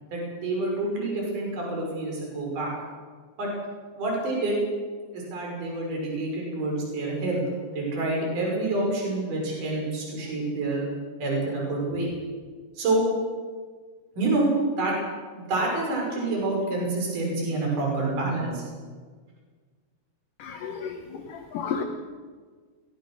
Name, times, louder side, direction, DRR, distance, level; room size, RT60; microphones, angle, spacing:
voice 1, 0.1-2.7 3.4-3.5 4.0-4.6 5.1-7.4 7.7-10.8 11.2-12.1 12.8-13.0 14.2-15.0 15.3-18.6, right 2 dB, 45° right, -2 dB, 7.5 m, -27 dB
voice 2, 20.4-21.8, left 6 dB, 65° left, 5 dB, 2.4 m, -33 dB
23.0 x 20.5 x 6.4 m, 1.5 s
omnidirectional pair, 5.0 m